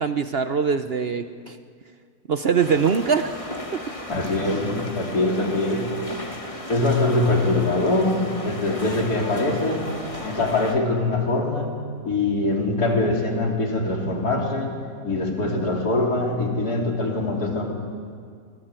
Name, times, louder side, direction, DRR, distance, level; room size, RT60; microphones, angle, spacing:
voice 1, 0.0-1.6 2.3-3.3 3.7-3.8, right 6 dB, 60° right, 9 dB, 0.6 m, -22 dB
sound 1, 2.6-10.7, left 1 dB, 20° left, 1.9 m, -35 dB
voice 2, 4.1-5.9 6.7-9.9 10.2-11.7 12.0-14.7 15.0-17.7, left 2 dB, 55° left, 0 dB, 3.9 m, -23 dB
24.0 x 19.0 x 9.0 m, 2.1 s
omnidirectional pair, 2.0 m